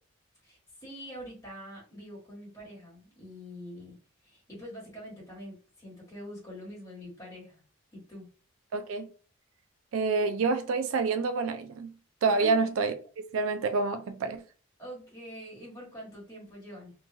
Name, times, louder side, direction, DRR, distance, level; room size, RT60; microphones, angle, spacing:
voice 1, 0.4-4.0 4.2-7.6 7.9-8.3 12.4-12.7 14.8-16.9, equal, 15° left, 1.3 m, -45 dB
voice 2, 8.7-9.1 9.9-11.9 12.2-12.9 13.3-14.4, right 4 dB, 70° right, 0.3 m, -27 dB
2.9 x 2.2 x 2.7 m
head